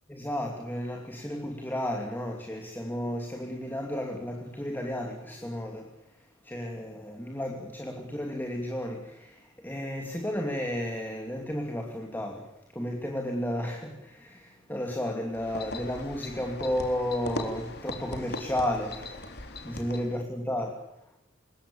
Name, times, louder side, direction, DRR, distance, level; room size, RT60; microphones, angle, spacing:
voice 1, 0.1-6.0 6.4-20.8, left 1 dB, 10° left, 2.8 m, -33 dB
sound 1, 15.3-20.2, left 2 dB, 50° left, 3.9 m, -39 dB
26.0 x 22.0 x 7.1 m
head